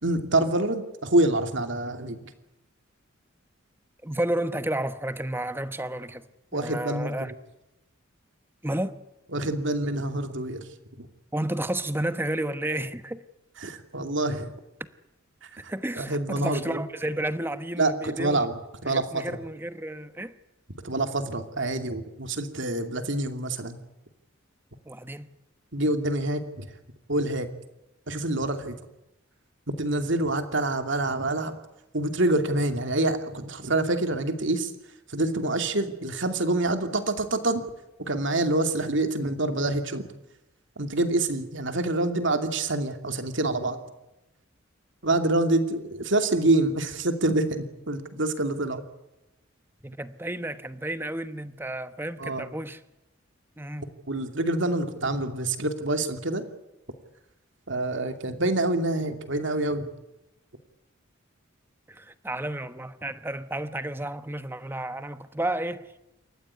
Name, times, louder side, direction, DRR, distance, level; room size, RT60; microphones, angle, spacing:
voice 1, 0.0-2.2 6.5-7.2 9.3-11.1 13.6-14.5 15.4-16.8 17.8-19.4 20.8-23.8 25.7-26.7 27.1-27.5 28.1-28.8 29.7-31.6 31.9-34.7 35.1-37.6 38.0-40.1 40.8-43.8 45.0-48.8 52.2-52.5 54.1-56.4 57.7-59.9, right 2 dB, 60° right, 2.7 m, -26 dB
voice 2, 4.0-6.3 6.5-7.3 8.6-9.0 11.3-13.2 15.6-18.5 18.8-20.4 24.8-25.3 49.8-52.8 53.6-54.0 61.9-66.0, right 1 dB, 10° right, 1.1 m, -32 dB
28.0 x 14.5 x 9.6 m
head